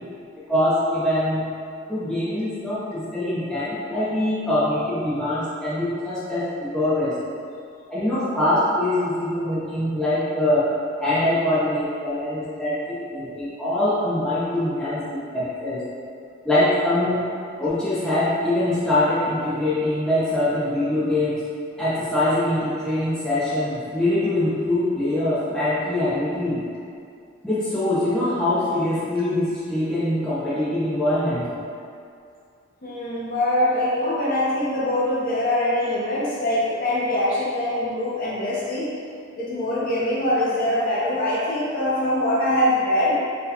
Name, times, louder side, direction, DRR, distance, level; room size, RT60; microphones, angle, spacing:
voice 1, 0.5-1.5 1.9-7.1 7.9-10.7 11.0-15.0 15.3-15.8 16.4-17.2 17.6-21.4 21.8-26.6 27.4-31.4, left 1 dB, 5° left, -12 dB, 0.5 m, -23 dB
voice 2, 32.8-38.9 39.3-43.1, left 1 dB, 40° left, -7 dB, 0.7 m, -23 dB
3.9 x 2.3 x 2.7 m, 2.4 s
head